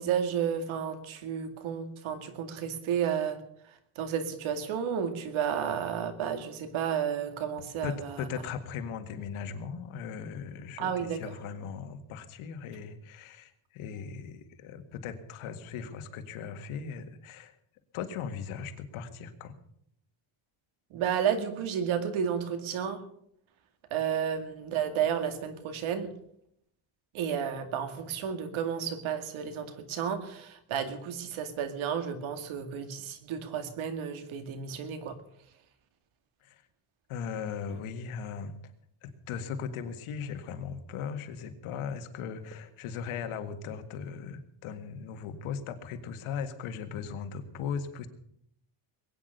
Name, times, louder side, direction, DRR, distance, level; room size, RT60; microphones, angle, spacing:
voice 1, 0.0-3.4 3.7-8.3 10.8-11.2 20.9-23.0 23.9-26.1 27.1-35.2 37.7-37.8, right 8 dB, 75° right, 8 dB, 2.4 m, -32 dB
voice 2, 7.8-17.6 17.9-19.5 36.4-36.6 37.1-38.6 39.0-48.1, left 6 dB, 90° left, 8 dB, 1.9 m, -38 dB
21.0 x 9.6 x 6.6 m, 0.70 s
cardioid pair, 140°, 48 cm